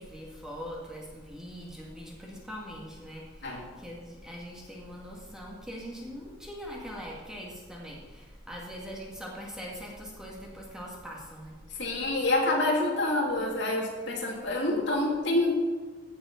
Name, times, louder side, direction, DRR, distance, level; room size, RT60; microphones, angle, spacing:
voice 1, 0.0-11.6, equal, 5° right, -3 dB, 2.1 m, -42 dB
voice 2, 11.8-15.5, left 2 dB, 60° left, -2 dB, 2.9 m, -27 dB
16.5 x 6.8 x 5.8 m, 1.3 s
head